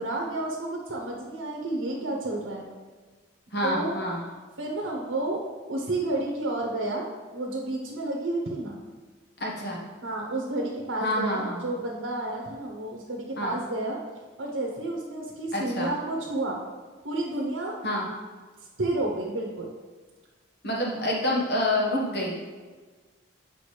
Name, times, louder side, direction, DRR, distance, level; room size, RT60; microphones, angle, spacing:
voice 1, 0.0-2.6 3.6-3.9 4.6-5.4 5.7-8.8 10.0-14.0 14.4-16.6 17.0-17.8 18.8-19.7, right 2 dB, 85° right, -1 dB, 0.9 m, -31 dB
voice 2, 3.5-4.2 9.4-9.8 11.0-11.6 13.4-13.5 15.5-15.9 17.8-18.1 20.6-22.3, left 1 dB, 55° left, -2 dB, 1.4 m, -27 dB
8.3 x 5.1 x 3.3 m, 1.4 s
head